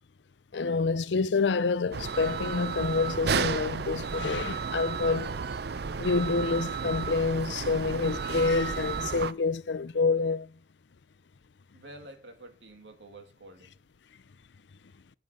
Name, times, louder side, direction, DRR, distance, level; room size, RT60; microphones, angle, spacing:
voice 1, 0.5-5.4 6.0-10.5, left 4 dB, 85° left, 0.6 m, -27 dB
sound 1, 1.9-9.3, right 5 dB, 65° right, 0.6 m, -32 dB
voice 2, 11.7-13.7, right 2 dB, 85° right, 2.5 m, -49 dB
9.9 x 9.2 x 6.3 m
head